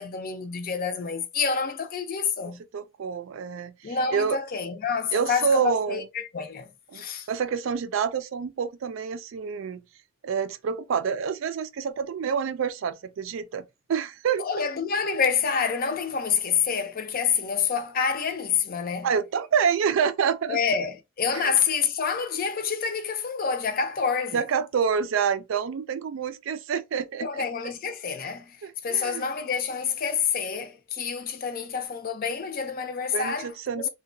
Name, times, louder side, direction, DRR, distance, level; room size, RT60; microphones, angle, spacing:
voice 1, 0.0-2.6 3.8-6.7 6.9-7.3 14.4-19.1 20.5-24.4 27.2-28.6 28.8-33.5 33.8-33.9, left 6 dB, 45° left, 0.5 m, -27 dB
voice 2, 2.7-4.4 5.1-6.1 6.9-9.8 10.2-13.6 13.9-14.5 19.0-20.6 21.3-21.5 24.3-27.5 28.6-29.2 33.1-33.9, right 6 dB, 70° right, 0.4 m, -27 dB
2.8 x 2.2 x 2.5 m
head